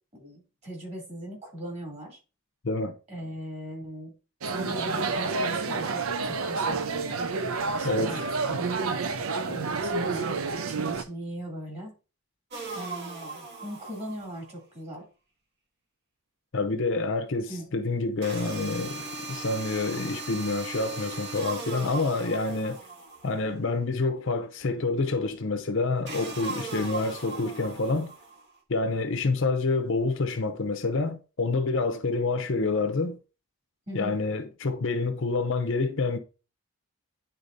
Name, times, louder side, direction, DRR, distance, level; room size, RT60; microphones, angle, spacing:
voice 1, 0.1-2.2 3.1-4.1 4.5-7.3 7.7-8.6 9.4-10.3 10.5-11.9 12.7-15.0 17.5-17.7 33.9-34.2, right 1 dB, 30° right, 2.8 m, -39 dB
sound 1, 4.4-11.0, right 4 dB, 75° right, 0.6 m, -29 dB
voice 2, 7.8-8.3 16.5-22.8 23.2-28.1 28.7-33.2 33.9-36.2, left 3 dB, 60° left, 0.7 m, -28 dB
sound 2, 12.5-14.5 18.2-23.5 26.1-28.5, right 3 dB, 50° right, 1.3 m, -38 dB
9.8 x 4.1 x 2.6 m
head